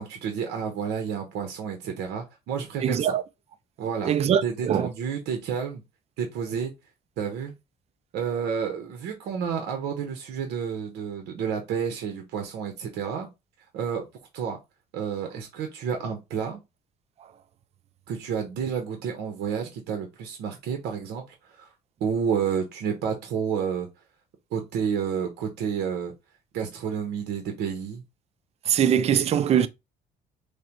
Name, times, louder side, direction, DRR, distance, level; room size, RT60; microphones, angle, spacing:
voice 1, 0.0-3.2 3.8-4.1 4.4-5.8 6.2-6.7 7.2-7.5 8.1-13.3 13.7-14.0 14.3-14.6 14.9-16.6 18.1-21.7 22.0-23.9 24.5-26.1 26.5-28.0, right 7 dB, 80° right, 1.0 m, -30 dB
voice 2, 2.8-3.2 4.1-4.9 28.7-29.7, right 9 dB, 40° right, 0.4 m, -22 dB
6.4 x 2.2 x 3.0 m
cardioid pair, 110°, 17 cm